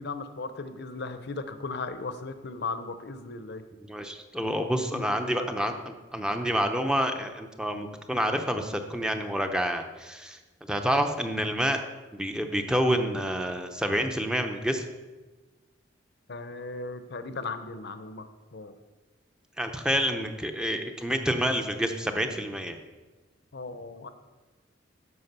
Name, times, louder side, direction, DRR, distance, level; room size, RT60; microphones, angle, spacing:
voice 1, 0.0-3.6 4.9-5.7 16.3-18.7 21.4-21.5 23.5-24.1, left 3 dB, 60° left, 10 dB, 0.7 m, -37 dB
voice 2, 3.9-5.7 6.1-10.4 10.7-11.8 12.1-14.8 19.6-22.8, equal, 5° right, 5 dB, 0.6 m, -28 dB
11.0 x 4.9 x 6.7 m, 1.2 s
head